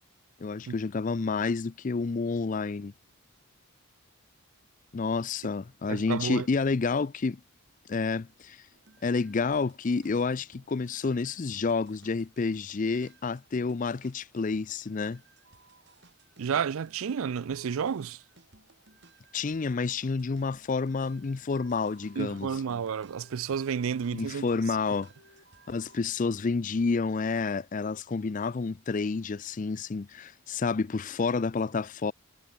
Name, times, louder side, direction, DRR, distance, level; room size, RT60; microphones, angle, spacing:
voice 1, 0.4-2.9 4.9-7.4 7.9-8.7 9.0-15.2 19.3-22.5 24.1-25.1 25.7-32.1, left 4 dB, 35° left, 0.4 m, -29 dB
voice 2, 5.9-6.5 16.4-18.2 22.2-24.5, right 7 dB, 70° right, 0.4 m, -31 dB
sound 1, 8.7-26.0, right 3 dB, 50° right, 6.1 m, -60 dB
Telephone, 21.1-28.5, left 2 dB, 75° left, 6.4 m, -60 dB
head